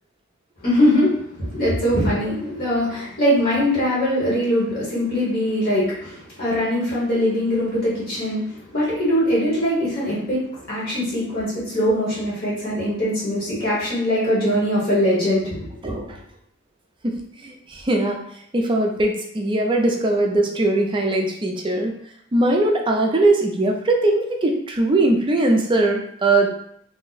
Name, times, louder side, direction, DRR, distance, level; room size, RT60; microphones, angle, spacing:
voice 1, 0.6-15.6, equal, 45° left, -7 dB, 1.2 m, -22 dB
voice 2, 15.8-16.2 17.0-18.2 18.5-21.9 22.3-26.5, right 2 dB, 25° right, 1 dB, 0.4 m, -20 dB
2.7 x 2.1 x 3.9 m, 0.69 s
head